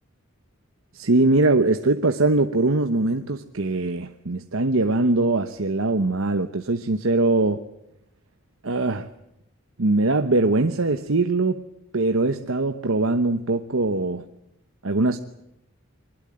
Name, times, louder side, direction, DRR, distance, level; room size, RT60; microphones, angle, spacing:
voice 1, 0.9-7.6 8.6-9.1 9.8-11.6 11.9-14.2 14.8-15.2, right 2 dB, 80° right, 1.1 m, -22 dB
23.5 x 20.5 x 8.9 m
head